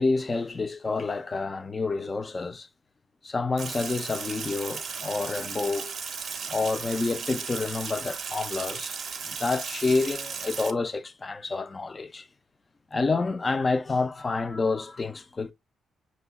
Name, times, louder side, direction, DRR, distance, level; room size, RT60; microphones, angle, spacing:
voice 1, 0.0-2.7 3.2-5.9 6.5-9.0 9.2-12.3 12.9-15.5, left 3 dB, 25° left, 0.3 m, -28 dB
Sink (filling or washing), 3.6-10.7, right 5 dB, 45° right, 0.5 m, -36 dB
6.0 x 2.1 x 3.4 m
wide cardioid pair, 165°, 0 cm